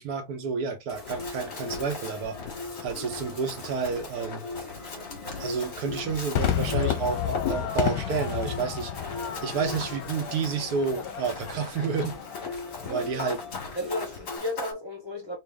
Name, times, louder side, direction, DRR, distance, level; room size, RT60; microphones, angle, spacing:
voice 1, 0.0-2.4 2.8-4.4 5.4-12.5 12.9-13.4, right 5 dB, 70° right, 1.4 m, -30 dB
sound 1, 0.9-14.4, left 2 dB, 20° left, 1.5 m, -41 dB
Run, 1.1-14.7, left 5 dB, 70° left, 2.2 m, -40 dB
Crowd / Fireworks, 6.4-12.9, left 9 dB, 90° left, 1.4 m, -31 dB
voice 2, 12.8-13.3 13.7-15.4, left 1 dB, 5° right, 1.2 m, -34 dB
4.5 x 2.5 x 3.4 m
omnidirectional pair, 1.8 m